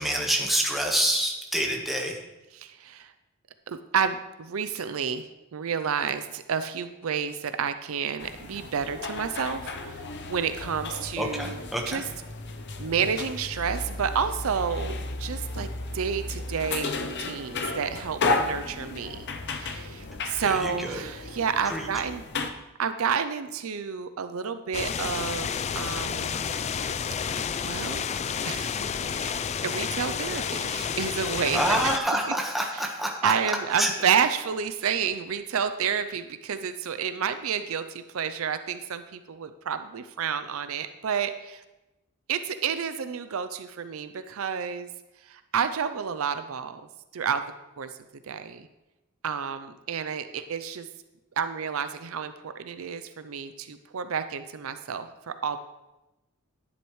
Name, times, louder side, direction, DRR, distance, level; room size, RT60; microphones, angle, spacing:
voice 1, 0.0-2.2 11.2-12.0 20.4-21.0 21.6-21.9 31.5-33.3 33.7-33.9, right 1 dB, ahead, 0 dB, 1.2 m, -27 dB
voice 2, 2.6-3.1 3.7-5.3 5.5-10.0 10.3-11.6 11.9-12.0 12.8-15.7 15.9-22.2 22.8-26.5 27.6-28.0 28.4-31.9 33.2-41.6 42.3-44.9 45.3-46.8 47.1-47.4 47.8-47.9 48.3-48.7 49.2-50.9 51.4-55.6, right 7 dB, 65° right, 10 dB, 0.5 m, -30 dB
sound 1, 8.2-22.5, left 3 dB, 50° left, 0.7 m, -34 dB
sound 2, 24.7-32.0, left 7 dB, 30° left, 0.3 m, -30 dB
11.0 x 10.0 x 3.2 m, 1.0 s
head